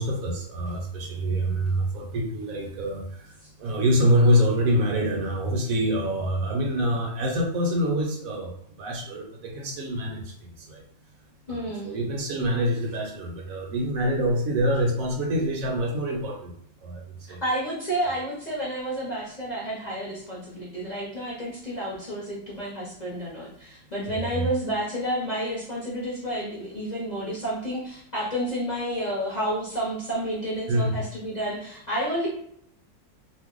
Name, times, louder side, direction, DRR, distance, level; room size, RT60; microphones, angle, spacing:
voice 1, 0.0-3.3 3.6-10.8 11.5-16.5 16.8-17.4 24.1-24.5 30.7-31.0, equal, 70° right, 1 dB, 1.0 m, -26 dB
voice 2, 11.5-11.9 17.3-32.3, right 1 dB, 40° left, -7 dB, 0.7 m, -30 dB
2.6 x 2.1 x 3.6 m, 0.67 s
omnidirectional pair, 1.6 m